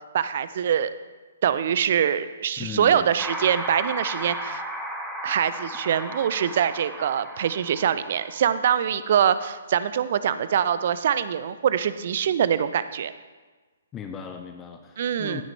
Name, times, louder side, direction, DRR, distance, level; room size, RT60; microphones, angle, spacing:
voice 1, 0.1-0.9 1.4-4.6 5.2-13.1 15.0-15.4, right 9 dB, 45° right, 14 dB, 0.5 m, -24 dB
voice 2, 2.6-3.1 13.9-15.4, left 7 dB, 15° left, 5 dB, 0.7 m, -37 dB
sound 1, 3.2-8.5, equal, ahead, 1.0 m, -35 dB
15.5 x 8.8 x 3.3 m, 1.3 s
figure-of-eight pair, 125°, 0 cm